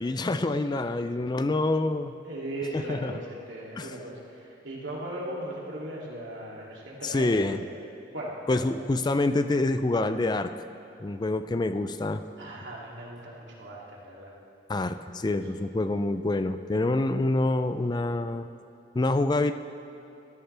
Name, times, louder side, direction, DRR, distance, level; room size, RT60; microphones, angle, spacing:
voice 1, 0.0-2.1 2.7-3.1 3.8-3.9 7.0-7.6 8.5-10.5 11.0-12.2 14.7-18.5 18.9-19.5, left 2 dB, 25° left, 10 dB, 0.4 m, -26 dB
voice 2, 2.2-7.6 8.1-8.7 12.4-14.3, right 1 dB, 85° right, -4 dB, 2.8 m, -38 dB
20.0 x 13.0 x 3.4 m, 2.6 s
head